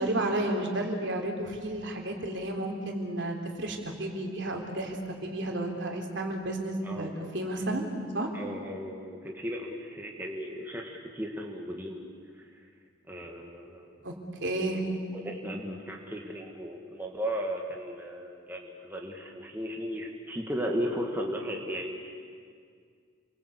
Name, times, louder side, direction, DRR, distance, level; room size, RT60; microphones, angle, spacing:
voice 1, 0.0-7.1 7.3-7.9 8.1-8.3 14.0-14.1 14.4-14.8, right 1 dB, 60° right, 2 dB, 3.8 m, -32 dB
voice 2, 8.3-12.0 13.1-14.0 14.5-22.1, equal, 10° right, 0 dB, 2.1 m, -36 dB
29.5 x 23.0 x 8.4 m, 2.1 s
head